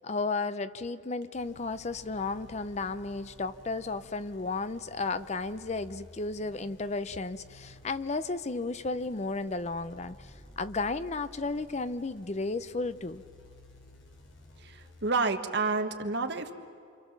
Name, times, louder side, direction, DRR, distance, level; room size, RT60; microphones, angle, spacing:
voice 1, 0.0-13.2, left 3 dB, 35° left, 13 dB, 0.6 m, -33 dB
sound 1, 1.3-15.1, left 1 dB, 75° left, 2.8 m, -54 dB
voice 2, 14.6-16.5, right 3 dB, 60° right, 6 dB, 1.5 m, -29 dB
28.5 x 25.5 x 7.3 m, 2.3 s
head